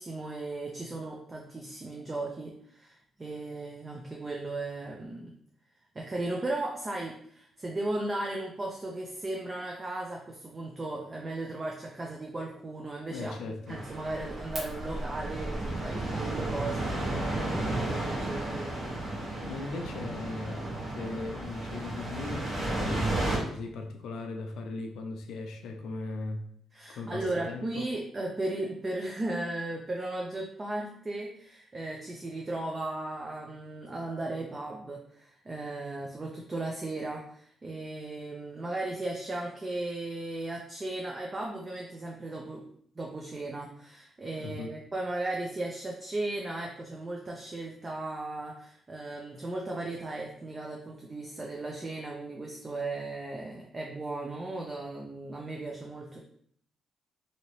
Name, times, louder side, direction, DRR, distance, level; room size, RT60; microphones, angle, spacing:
voice 1, 0.0-5.3 5.9-13.3 13.7-17.2 17.5-18.7 26.7-42.7 43.0-56.2, right 2 dB, 25° right, -1 dB, 0.4 m, -36 dB
voice 2, 13.1-13.8 19.4-20.7 20.9-26.5 26.9-27.9 44.4-44.8, left 3 dB, 80° left, 4 dB, 0.5 m, -38 dB
sound 1, 13.7-23.4, right 2 dB, 45° right, 1.1 m, -33 dB
2.8 x 2.8 x 3.0 m, 0.64 s
cardioid pair, 120°, 0 cm